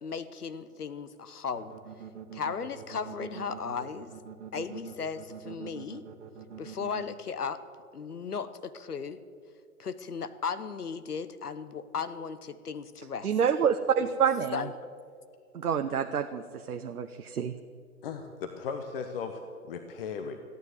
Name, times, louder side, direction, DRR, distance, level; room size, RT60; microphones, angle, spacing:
voice 1, 0.0-1.8 2.3-4.1 4.5-6.0 6.6-7.6 7.9-9.2 9.8-13.3 14.5-14.7, left 6 dB, 85° left, 13 dB, 1.0 m, -36 dB
sound 1, 1.5-7.0, right 8 dB, 50° right, 1.5 m, -44 dB
voice 2, 13.2-14.6 15.5-16.4 16.7-17.5, right 7 dB, 75° right, 7 dB, 0.8 m, -27 dB
voice 3, 18.0-19.4 19.7-20.4, left 6 dB, 40° left, 7 dB, 1.0 m, -36 dB
14.5 x 9.5 x 8.0 m, 2.2 s
figure-of-eight pair, 125°, 45 cm